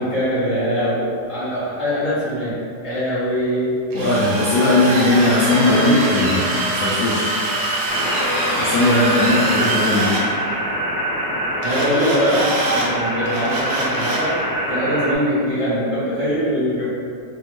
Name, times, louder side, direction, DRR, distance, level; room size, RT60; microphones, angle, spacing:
voice 1, 0.0-3.7 4.9-5.2 5.6-6.1 8.7-10.0 11.6-14.4 14.7-16.8, equal, 35° right, -13 dB, 0.6 m, -23 dB
voice 2, 3.9-7.3 8.5-10.2, left 2 dB, 75° left, -9 dB, 0.8 m, -18 dB
Drill, 3.9-10.2 11.6-12.9 13.3-14.3, right 2 dB, 85° right, 1.3 m, -24 dB
sound 1, 7.9-15.2, equal, 60° right, 1.1 m, -24 dB
3.3 x 2.1 x 3.0 m, 2.3 s
omnidirectional pair, 1.9 m